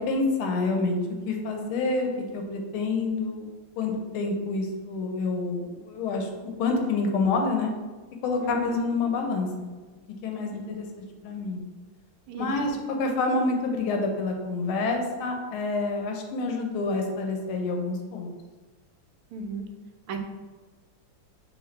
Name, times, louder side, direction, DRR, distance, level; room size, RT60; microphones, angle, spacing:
voice 1, 0.1-1.0 1.3-3.5 3.8-6.3 6.6-7.7 8.2-9.7 10.2-11.6 12.4-18.3, left 3 dB, 85° left, 3 dB, 1.5 m, -28 dB
voice 2, 19.3-19.6 20.1-20.2, right 4 dB, 85° right, 5 dB, 1.5 m, -34 dB
5.7 x 2.6 x 3.1 m, 1.3 s
omnidirectional pair, 2.3 m